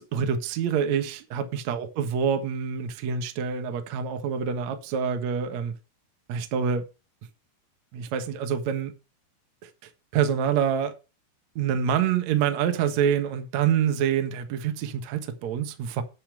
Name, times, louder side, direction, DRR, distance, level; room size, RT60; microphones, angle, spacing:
voice 1, 0.0-5.7 6.3-6.8 7.9-8.9 10.1-10.9 11.5-16.0, right 7 dB, 85° right, 1.5 m, -26 dB
10.0 x 5.1 x 7.5 m
omnidirectional pair, 5.7 m